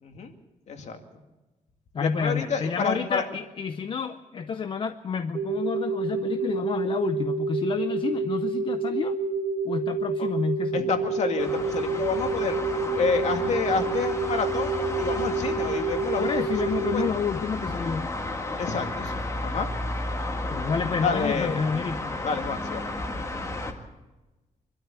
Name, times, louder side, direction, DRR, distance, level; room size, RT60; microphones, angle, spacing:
voice 1, 0.0-0.3 0.7-1.0 2.0-3.2 10.2-10.3 10.7-12.6 13.0-16.3 16.7-17.1 18.6-19.7 21.0-21.6 22.2-22.9, left 5 dB, 55° left, 5 dB, 2.3 m, -29 dB
voice 2, 1.9-9.2 9.6-10.9 16.2-18.1 20.5-22.1, left 6 dB, 40° left, 9 dB, 0.6 m, -29 dB
sound 1, 5.3-17.1, right 4 dB, 80° right, 1.7 m, -28 dB
sound 2, 11.4-23.7, left 2 dB, 20° left, 1.8 m, -33 dB
25.0 x 12.5 x 8.3 m, 1.1 s
wide cardioid pair, 180°, 14 cm